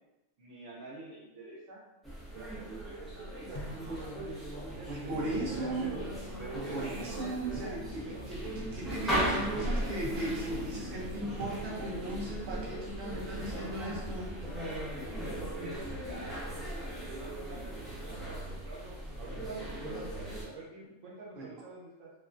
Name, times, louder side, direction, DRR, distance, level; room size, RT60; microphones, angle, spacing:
voice 1, 0.4-1.8 2.3-5.2 5.5-6.1 6.4-7.8 8.0-8.2 14.9-16.4 16.9-22.1, right 2 dB, 75° right, -5 dB, 1.1 m, -46 dB
sound 1, 2.0-20.4, right 1 dB, ahead, 0.4 m, -38 dB
sound 2, 3.5-4.3 5.2-5.9 7.5-8.0 9.9-10.6 11.4-12.1, equal, 55° left, 0.5 m, -47 dB
voice 2, 4.9-5.9 6.5-14.4 21.4-21.5, right 1 dB, 60° right, -5 dB, 0.8 m, -37 dB
sound 3, 5.0-17.7, left 1 dB, 40° right, 1.3 m, -47 dB
2.8 x 2.2 x 2.4 m, 0.98 s
omnidirectional pair, 1.3 m